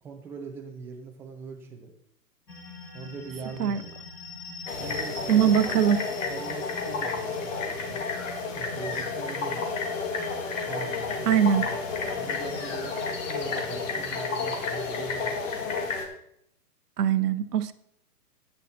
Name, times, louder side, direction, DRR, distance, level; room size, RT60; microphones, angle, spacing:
voice 1, 0.0-1.9 2.9-4.0 4.8-5.8 6.2-8.0 8.5-9.6 10.7-11.8 12.1-13.0 13.3-15.7, right 5 dB, 5° right, 2 dB, 0.5 m, -42 dB
sound 1, 2.5-15.3, left 2 dB, 85° left, 2.5 m, -44 dB
sound 2, 4.7-16.1, left 4 dB, 50° left, 2.1 m, -31 dB
voice 2, 5.3-6.0 11.3-11.6 17.0-17.7, right 9 dB, 70° right, 13 dB, 0.9 m, -21 dB
9.9 x 9.1 x 4.2 m, 0.72 s
hypercardioid pair, 130°, 49 cm